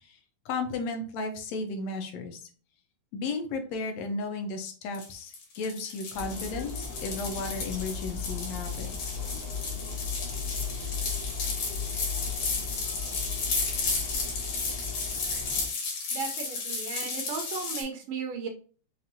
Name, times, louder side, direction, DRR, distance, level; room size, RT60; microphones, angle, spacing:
voice 1, 0.5-2.4 3.1-9.1, left 3 dB, 70° left, 5 dB, 1.9 m, -34 dB
sound 1, 4.9-17.8, left 4 dB, 85° left, 3.0 m, -33 dB
sound 2, 6.1-15.7, left 5 dB, 40° left, 0.8 m, -37 dB
voice 2, 16.1-18.5, right 6 dB, 85° right, 2 dB, 1.3 m, -35 dB
5.7 x 2.7 x 2.6 m, 0.41 s
omnidirectional pair, 3.4 m